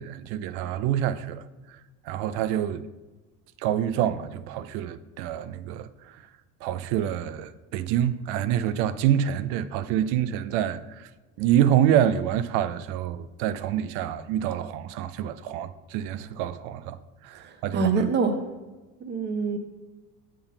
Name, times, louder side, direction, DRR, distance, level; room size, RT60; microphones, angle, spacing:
voice 1, 0.0-1.8 2.0-2.9 3.6-6.2 6.6-11.1 11.4-17.9, right 10 dB, 75° right, 0.5 m, -27 dB
voice 2, 17.4-18.4 19.0-19.6, right 5 dB, 25° right, 0.7 m, -25 dB
7.0 x 3.8 x 5.6 m
supercardioid pair, 90°, 42 cm